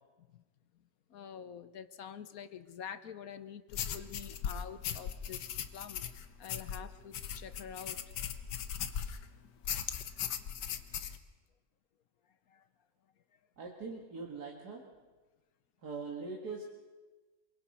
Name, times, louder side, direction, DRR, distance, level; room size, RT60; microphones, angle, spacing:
voice 1, 1.1-6.0 6.4-8.0 12.5-12.7, left 8 dB, 65° left, 12 dB, 1.2 m, -47 dB
sound 1, 3.7-9.3 9.6-11.2, left 8 dB, 85° left, 1.6 m, -38 dB
voice 2, 13.6-14.8 15.8-16.6, right 4 dB, 70° right, 0 dB, 2.5 m, -42 dB
27.5 x 23.0 x 4.4 m, 1.2 s
omnidirectional pair, 1.8 m